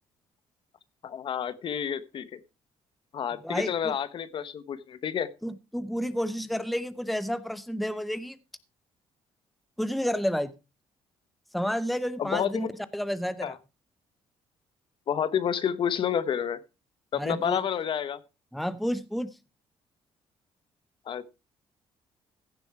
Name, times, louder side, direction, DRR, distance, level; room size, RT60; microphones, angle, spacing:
voice 1, 1.0-2.4 3.1-5.3 12.2-12.7 13.4-13.6 15.1-16.6 17.1-18.2 21.1-21.4, left 8 dB, 50° left, 1.0 m, -29 dB
voice 2, 3.4-3.9 5.4-8.4 9.8-10.5 11.5-12.7 12.9-13.5 17.2-17.6 18.5-19.3, equal, ahead, 0.8 m, -30 dB
15.5 x 7.0 x 4.7 m
cardioid pair, 115°, 11 cm